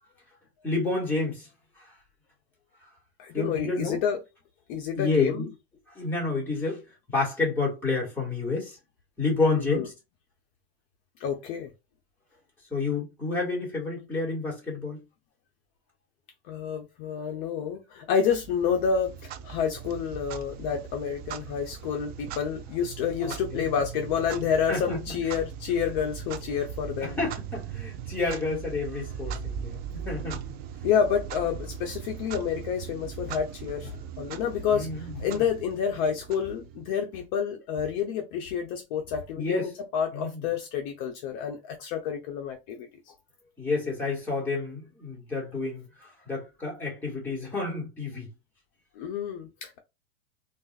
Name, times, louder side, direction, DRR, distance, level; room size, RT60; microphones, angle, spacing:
voice 1, 0.6-1.5 1.8-1.9 3.3-4.0 5.0-5.5 6.0-8.8 9.2-9.9 12.7-15.0 23.2-23.6 24.7-25.3 27.0-30.4 34.7-35.4 39.4-39.7 40.1-40.4 43.6-48.3, left 3 dB, 5° left, 1.8 m, -30 dB
voice 2, 3.2-4.2 4.7-5.4 9.5-9.9 11.2-11.7 16.5-27.2 30.8-42.9 49.0-49.8, left 7 dB, 45° left, 0.6 m, -29 dB
Clock, 18.3-37.0, right 8 dB, 30° right, 0.4 m, -39 dB
3.7 x 2.4 x 2.3 m
supercardioid pair, 130°, 31 cm